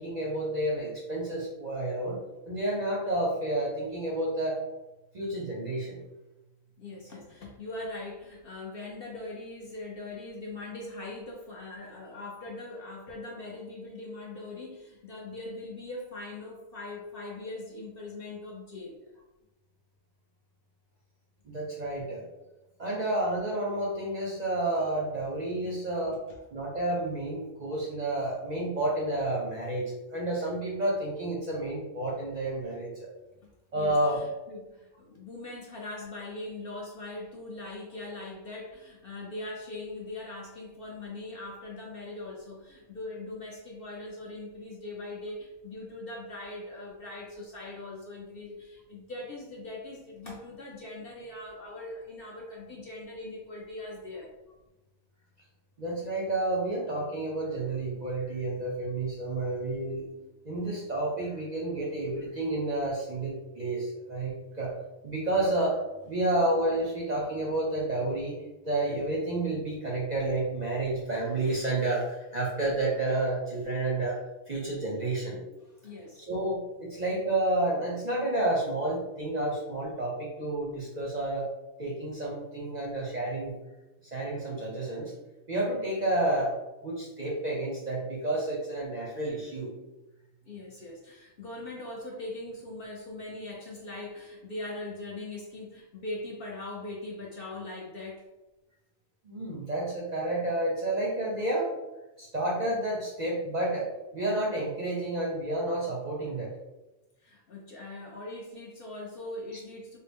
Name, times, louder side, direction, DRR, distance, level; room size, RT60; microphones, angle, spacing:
voice 1, 0.0-4.6 5.1-6.0 21.4-22.3 22.8-26.2 26.5-33.1 33.7-34.2 55.8-60.0 60.4-64.8 65.0-68.4 68.6-74.2 74.5-75.4 76.3-81.5 81.8-83.6 84.1-85.1 85.5-86.5 86.8-89.7 99.2-101.7 102.2-106.5, right 2 dB, 45° right, -4 dB, 0.6 m, -30 dB
voice 2, 6.8-19.0 25.6-25.7 33.7-54.3 75.6-76.3 90.4-98.3 107.2-110.0, left 2 dB, 55° left, -2 dB, 0.7 m, -41 dB
3.9 x 2.1 x 3.4 m, 1.0 s
omnidirectional pair, 1.4 m